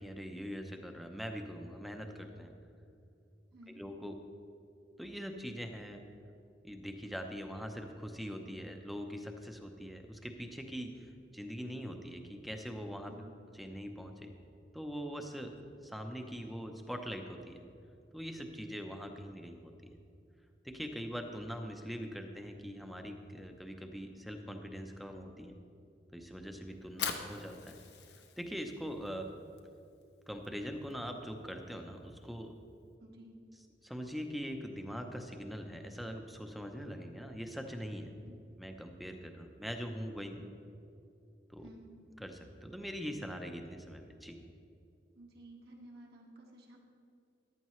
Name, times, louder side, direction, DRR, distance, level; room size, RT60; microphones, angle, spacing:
voice 1, 0.0-2.5 3.8-4.2 5.0-6.0 6.6-11.1 11.3-13.1 13.6-14.3 14.7-15.6 15.8-17.6 18.1-19.7 20.6-25.6 26.1-27.8 28.4-29.3 30.3-32.5 33.8-38.1 38.6-40.4 41.5-41.6 42.2-44.4, equal, ahead, 4 dB, 0.7 m, -42 dB
voice 2, 3.5-3.8 13.1-13.4 33.0-33.4 38.2-38.4 41.6-41.9 45.1-46.8, right 1 dB, 60° right, -1 dB, 1.7 m, -54 dB
Fire, 26.7-32.9, left 7 dB, 70° left, 0.9 m, -45 dB
14.5 x 11.5 x 3.1 m, 2.6 s
head